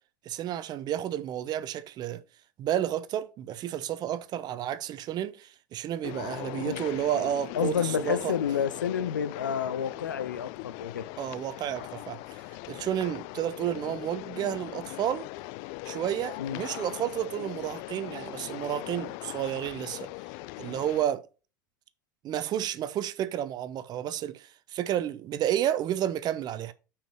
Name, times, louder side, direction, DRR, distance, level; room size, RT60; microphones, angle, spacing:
voice 1, 0.2-2.2 2.6-8.3 11.2-12.4 12.7-15.3 15.8-20.1 20.6-21.2 22.2-26.7, right 11 dB, 45° right, 0.8 m, -31 dB
sound 1, 6.0-21.0, left 20 dB, 55° left, 0.4 m, -40 dB
voice 2, 7.5-11.1 16.4-16.6, left 8 dB, 85° left, 0.7 m, -30 dB
6.1 x 4.9 x 6.4 m
hypercardioid pair, 80°, 10 cm